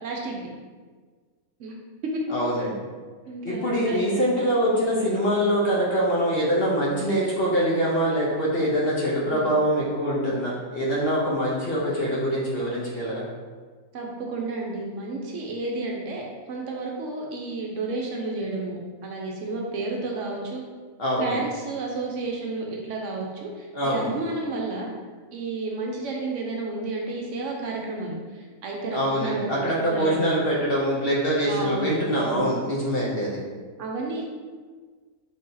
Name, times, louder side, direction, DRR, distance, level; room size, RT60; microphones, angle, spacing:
voice 1, 0.0-0.5 1.6-1.7 2.1-2.2 3.3-4.3 9.3-9.5 13.9-20.6 21.2-24.9 25.3-30.2 31.4-32.5 33.8-34.3, right 3 dB, 70° right, -1 dB, 0.9 m, -31 dB
voice 2, 2.3-2.8 3.4-13.2 21.0-21.4 23.7-24.2 28.9-33.4, equal, 50° left, -5 dB, 0.8 m, -24 dB
3.6 x 2.7 x 3.8 m, 1.5 s
omnidirectional pair, 1.5 m